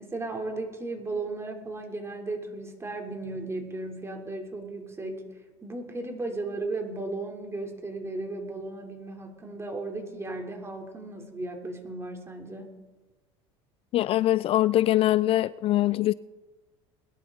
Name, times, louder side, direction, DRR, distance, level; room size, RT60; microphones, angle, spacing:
voice 1, 0.0-5.3 5.6-12.8, right 2 dB, 20° right, 3.3 m, -35 dB
voice 2, 13.9-16.1, left 14 dB, 45° left, 0.4 m, -23 dB
21.0 x 11.5 x 3.9 m
supercardioid pair, 85°, 13 cm